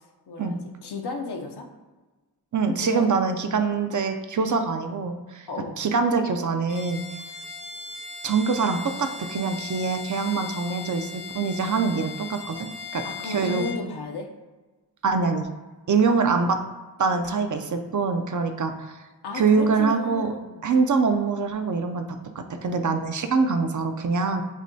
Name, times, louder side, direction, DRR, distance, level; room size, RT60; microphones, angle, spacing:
voice 1, 0.3-1.7 2.8-3.1 5.5-5.8 13.0-14.3 16.1-16.3 19.2-20.7, left 3 dB, 75° left, 3 dB, 0.6 m, -33 dB
voice 2, 2.5-5.5 5.8-7.0 8.2-13.7 15.0-15.5 15.9-16.6 17.0-19.0 19.3-20.3 20.6-22.0 22.4-24.4, right 4 dB, 50° right, 7 dB, 0.4 m, -24 dB
Bowed string instrument, 6.7-13.9, left 4 dB, 30° left, 0.5 m, -38 dB
6.3 x 2.2 x 2.7 m, 1.2 s
wide cardioid pair, 70°, 39 cm